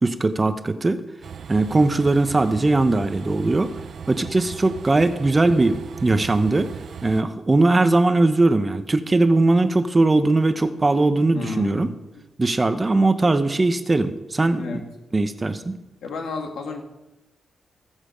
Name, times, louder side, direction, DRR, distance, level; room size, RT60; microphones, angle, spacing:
voice 1, 0.0-1.0 1.5-3.7 4.1-6.7 7.0-11.9 12.4-14.8 15.1-15.7, right 2 dB, 20° right, 10 dB, 0.8 m, -20 dB
Train, 1.2-7.2, right 7 dB, 60° right, 0.7 m, -38 dB
voice 2, 11.3-11.9 12.1-12.2 14.5-14.8 16.0-16.8, left 4 dB, 90° left, 3 dB, 2.3 m, -31 dB
21.0 x 7.4 x 5.1 m, 0.99 s
wide cardioid pair, 135°, 0 cm